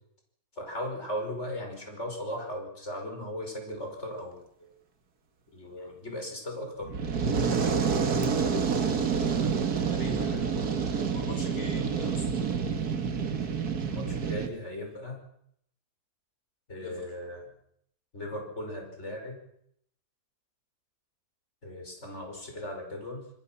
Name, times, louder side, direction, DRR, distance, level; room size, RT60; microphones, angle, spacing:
voice 1, 0.6-4.7 5.5-6.9 13.7-15.2 16.7-17.5 18.1-19.4 21.6-23.3, left 1 dB, 45° left, 2 dB, 5.8 m, -37 dB
Fire, 6.8-14.5, right 6 dB, 70° right, 2.2 m, -28 dB
voice 2, 9.0-12.2 16.7-17.1, equal, 65° left, 1 dB, 7.7 m, -42 dB
27.0 x 21.0 x 5.9 m, 0.71 s
omnidirectional pair, 1.7 m